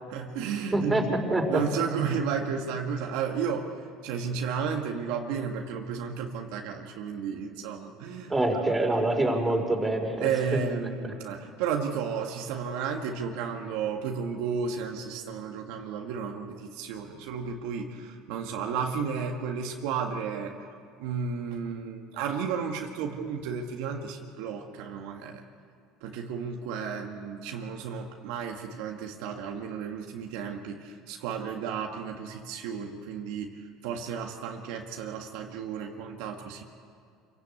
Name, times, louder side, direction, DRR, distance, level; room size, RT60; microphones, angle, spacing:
voice 1, 0.1-1.2 1.5-3.7 4.0-8.3 10.2-20.7 21.0-25.4 26.0-36.6, right 6 dB, 75° right, 2 dB, 1.7 m, -33 dB
voice 2, 0.7-1.0 1.3-1.6 8.3-10.3, right 2 dB, 15° right, 1 dB, 4.2 m, -25 dB
26.5 x 17.0 x 8.4 m, 2.3 s
supercardioid pair, 105°, 0 cm